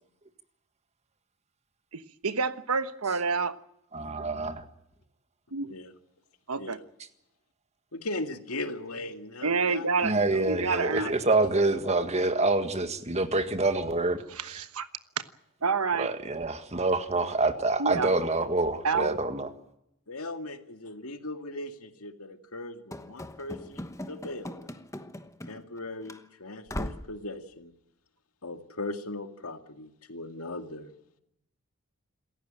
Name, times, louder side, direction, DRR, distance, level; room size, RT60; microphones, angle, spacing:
voice 1, 1.9-3.6 5.5-5.7 6.5-6.8 9.4-10.1 10.5-11.1 14.3-14.9 15.6-16.1 17.8-18.1 18.8-19.2, right 4 dB, 80° right, 1.2 m, -28 dB
voice 2, 3.9-4.6 10.0-14.2 14.5-14.6 16.0-19.5, right 2 dB, 30° right, 1.7 m, -26 dB
voice 3, 7.9-11.1 20.1-24.7 25.5-27.7 28.4-30.9, left 2 dB, 80° left, 2.2 m, -39 dB
Run / Slam, 22.9-25.8 26.1-26.2 26.7-27.2, left 1 dB, 15° left, 1.1 m, -39 dB
27.5 x 15.0 x 9.0 m
head